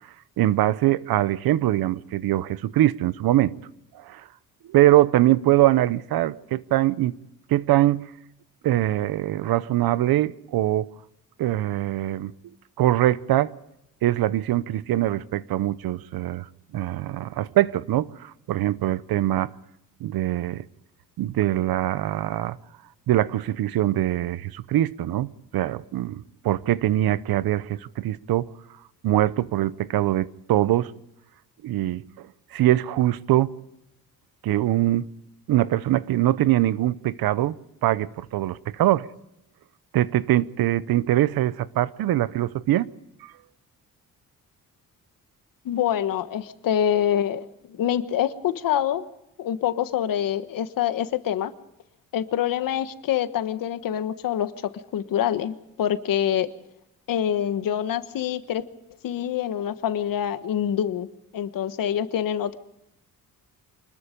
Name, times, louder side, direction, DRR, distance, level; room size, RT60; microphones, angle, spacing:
voice 1, 0.4-3.5 4.1-4.2 4.7-7.1 7.5-8.0 8.6-10.9 11.4-12.3 12.8-13.5 14.0-16.5 16.7-19.5 20.0-20.6 21.2-22.6 23.1-28.5 29.0-30.9 31.6-32.0 32.5-33.5 34.4-35.1 35.5-37.6 37.8-39.1 39.9-42.9 43.2-43.3, right 14 dB, 80° right, 18 dB, 0.8 m, -23 dB
voice 2, 45.6-49.0 49.4-51.5 52.1-56.5 57.1-58.6 59.0-61.1 61.3-62.6, left 10 dB, 70° left, 12 dB, 1.3 m, -26 dB
25.5 x 20.5 x 5.1 m, 0.84 s
cardioid pair, 175°, 35 cm